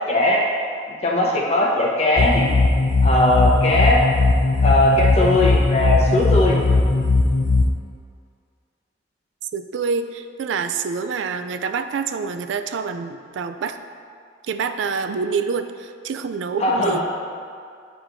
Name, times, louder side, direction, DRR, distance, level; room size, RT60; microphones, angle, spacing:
voice 1, 0.1-0.4 1.0-2.5 3.0-4.0 4.6-6.6 16.6-17.0, left 1 dB, 35° left, -3 dB, 0.9 m, -19 dB
sound 1, 2.2-7.7, left 3 dB, 65° left, 0.5 m, -18 dB
voice 2, 9.5-13.8 14.4-17.0, right 5 dB, 85° right, 8 dB, 0.3 m, -26 dB
9.4 x 4.4 x 2.6 m, 2.3 s
head